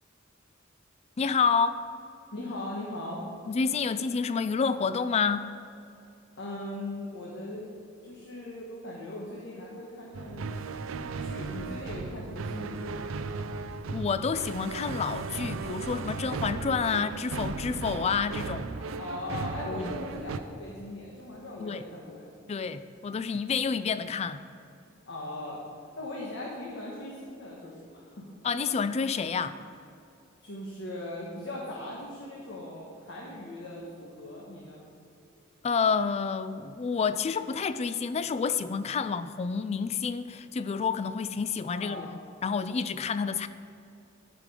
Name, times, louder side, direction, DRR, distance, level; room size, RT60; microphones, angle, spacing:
voice 1, 1.2-1.8 3.5-5.5 13.9-18.7 19.7-20.0 21.6-21.8 22.5-24.4 28.4-29.6 35.6-43.5, left 5 dB, 35° left, 13 dB, 0.3 m, -29 dB
voice 2, 2.3-3.2 6.4-7.7 8.0-10.5 11.2-13.1 18.8-22.3 25.1-25.6 26.0-28.2 30.4-34.9 41.7-42.1, left 1 dB, 65° left, -3 dB, 1.3 m, -39 dB
sound 1, 10.1-20.4, right 4 dB, 85° right, 0.4 m, -36 dB
11.5 x 5.1 x 4.9 m, 2.6 s
head